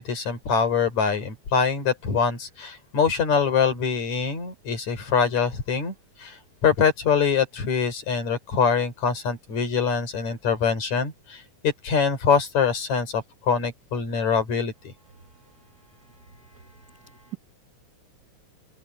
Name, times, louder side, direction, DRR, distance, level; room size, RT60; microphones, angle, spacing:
voice 1, 0.0-5.9 6.2-14.7, left 6 dB, 65° left, 5.3 m, -24 dB
voice 2, 16.2-17.4, right 12 dB, 60° right, 0.9 m, -44 dB
omnidirectional pair, 3.5 m